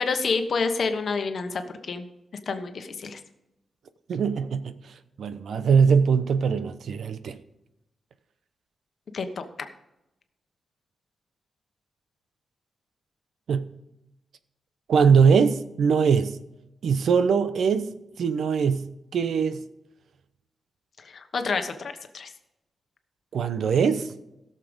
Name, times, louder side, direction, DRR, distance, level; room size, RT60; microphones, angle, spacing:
voice 1, 0.0-2.0 2.5-3.2 9.1-9.4 21.0-22.3, left 4 dB, 50° left, 1.1 m, -28 dB
voice 2, 4.1-4.8 5.2-7.4 13.5-13.6 14.9-16.4 16.8-17.9 18.2-19.6 23.3-24.1, right 6 dB, 75° right, 0.8 m, -21 dB
16.5 x 6.7 x 5.2 m
wide cardioid pair, 170°, 0 cm